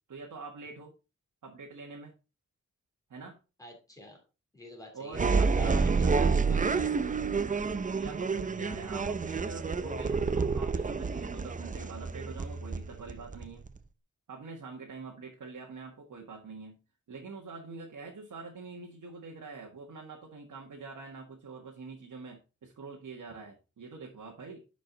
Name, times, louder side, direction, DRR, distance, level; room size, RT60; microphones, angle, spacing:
voice 1, 0.1-0.9 1.4-2.1 3.1-3.4 4.9-6.3 7.9-13.6 14.3-16.8 17.1-24.6, right 4 dB, 85° right, -1 dB, 1.8 m, -45 dB
voice 2, 3.6-4.2 4.5-7.2, left 1 dB, 10° left, 1 dB, 3.1 m, -48 dB
sound 1, 5.1-13.8, right 4 dB, 25° right, 0.5 m, -29 dB
10.5 x 5.2 x 4.0 m, 0.31 s
wide cardioid pair, 180°, 30 cm